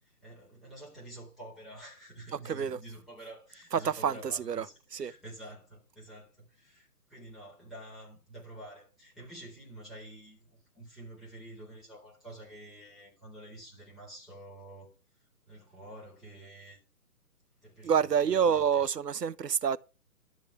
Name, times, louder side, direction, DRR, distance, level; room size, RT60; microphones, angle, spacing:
voice 1, 0.0-14.9 15.5-16.8 17.6-18.8, right 1 dB, ahead, 4.0 m, -49 dB
voice 2, 2.3-2.8 3.7-4.7 4.9-5.1 17.8-19.8, right 7 dB, 90° right, 0.6 m, -28 dB
13.0 x 7.2 x 3.4 m
figure-of-eight pair, 140°, 47 cm